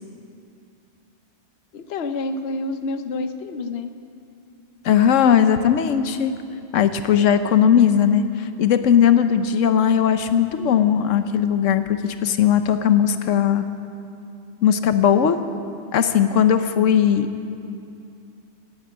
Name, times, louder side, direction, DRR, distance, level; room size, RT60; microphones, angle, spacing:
voice 1, 1.7-3.9, left 2 dB, 60° left, 9 dB, 1.0 m, -28 dB
voice 2, 4.8-6.3 6.7-13.6 14.6-15.4 15.9-17.3, left 8 dB, 90° left, 10 dB, 1.1 m, -18 dB
18.0 x 9.0 x 8.8 m, 2.5 s
omnidirectional pair, 1.3 m